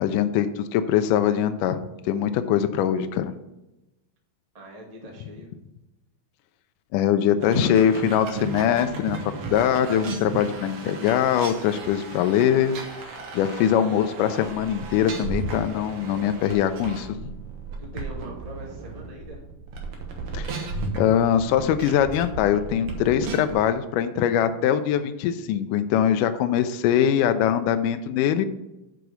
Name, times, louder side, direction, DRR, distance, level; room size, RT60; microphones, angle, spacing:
voice 1, 0.0-1.8 2.1-3.3 6.9-12.7 13.3-17.2 20.3-28.5, left 9 dB, 85° left, 9 dB, 1.9 m, -22 dB
voice 2, 4.5-5.5 17.8-19.5, equal, 30° right, -2 dB, 0.6 m, -42 dB
sound 1, 7.4-23.6, right 3 dB, 65° right, 1.4 m, -35 dB
6.3 x 5.9 x 6.7 m, 0.95 s
omnidirectional pair, 4.2 m